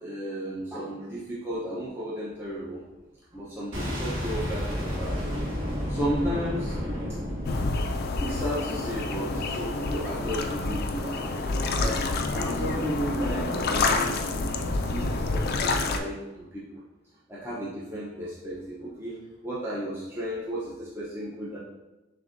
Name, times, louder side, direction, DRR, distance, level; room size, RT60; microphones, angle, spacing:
voice 1, 0.0-2.8 3.3-5.2 5.9-6.7 8.2-11.2 11.7-12.0 12.3-14.4 14.7-16.8 17.3-19.2 19.4-21.6, equal, 10° right, -8 dB, 0.6 m, -33 dB
sound 1, 2.4-2.5 2.9-12.3, equal, 55° right, 0.9 m, -45 dB
Boom, 3.7-8.6, equal, 75° right, 1.3 m, -31 dB
sound 2, 7.4-16.0, left 3 dB, 50° left, 0.4 m, -28 dB
6.7 x 2.7 x 2.5 m, 1.1 s
head